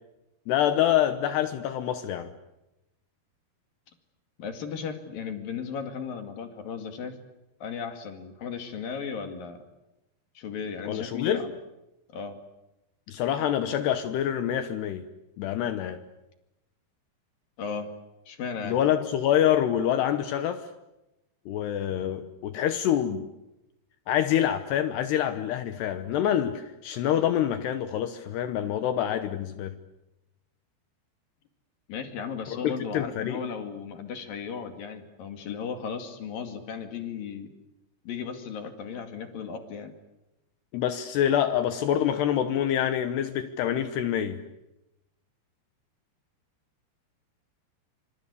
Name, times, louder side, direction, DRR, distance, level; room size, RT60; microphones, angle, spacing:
voice 1, 0.5-2.3 10.9-11.5 13.1-15.0 15.4-16.0 18.6-20.7 21.5-23.3 24.1-29.8 32.5-33.4 40.7-44.4, left 10 dB, 75° left, 10 dB, 3.0 m, -26 dB
voice 2, 4.4-7.2 7.6-9.6 10.4-11.5 12.1-12.4 17.6-17.9 18.3-18.8 31.9-37.5 38.1-39.9, left 6 dB, 55° left, 6 dB, 3.7 m, -36 dB
26.5 x 26.5 x 8.3 m, 0.95 s
omnidirectional pair, 5.2 m